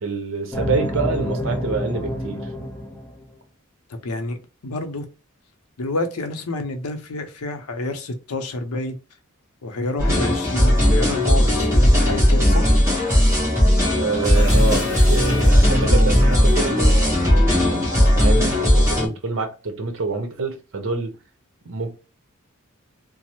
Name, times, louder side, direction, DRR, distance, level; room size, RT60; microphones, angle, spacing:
voice 1, 0.0-2.5 13.9-21.2 21.7-21.9, right 4 dB, 65° right, 0.7 m, -27 dB
sound 1, 0.5-3.3, equal, 10° left, 0.5 m, -27 dB
voice 2, 3.9-4.4 4.6-5.0 5.8-8.9 9.6-12.8, left 2 dB, 90° left, 0.6 m, -28 dB
sound 2, 10.0-19.1, equal, 15° right, 1.3 m, -17 dB
Bathtub (filling or washing) / Splash splatter, 14.2-16.7, left 2 dB, 40° left, 0.9 m, -39 dB
3.1 x 2.0 x 2.9 m
head